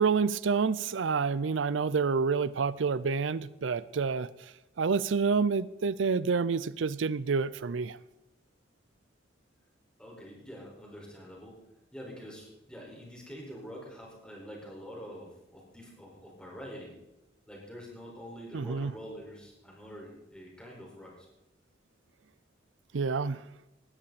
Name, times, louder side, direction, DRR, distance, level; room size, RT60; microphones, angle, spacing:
voice 1, 0.0-4.3 4.8-8.0 18.5-18.9 22.9-23.4, right 5 dB, 85° right, 0.5 m, -28 dB
voice 2, 10.0-11.6 11.9-16.9 17.5-21.3, equal, 5° left, 4.9 m, -46 dB
19.0 x 13.0 x 4.2 m
head